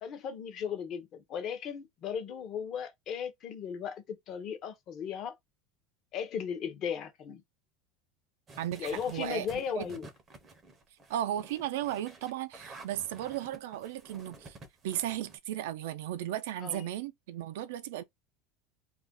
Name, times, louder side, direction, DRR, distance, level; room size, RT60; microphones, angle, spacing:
voice 1, 0.0-5.3 6.1-7.4 8.8-10.1 16.6-16.8, left 7 dB, 30° left, 0.6 m, -36 dB
sound 1, 8.5-15.4, right 3 dB, 20° right, 0.5 m, -51 dB
voice 2, 8.6-9.5 9.8-9.9 11.1-14.6 14.8-18.0, right 12 dB, 90° right, 0.4 m, -35 dB
2.4 x 2.1 x 3.5 m
cardioid pair, 180°, 0 cm